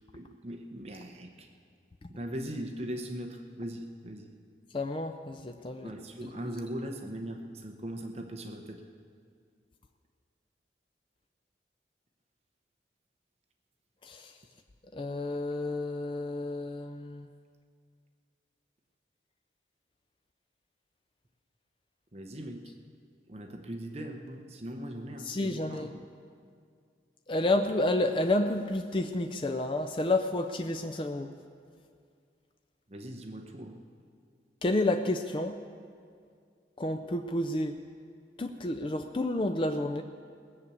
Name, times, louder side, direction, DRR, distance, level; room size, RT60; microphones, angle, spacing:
voice 1, 0.1-1.5 2.1-4.3 5.8-8.9 22.1-22.8 23.3-26.0 32.9-33.8, right 1 dB, 35° right, 4 dB, 0.8 m, -40 dB
voice 2, 4.7-5.9 6.2-6.3 14.0-14.3 14.9-17.3 25.3-25.9 27.3-31.3 34.6-35.6 36.8-37.8 38.4-40.0, left 2 dB, 30° left, 6 dB, 0.4 m, -30 dB
18.5 x 7.0 x 8.3 m, 2.2 s
head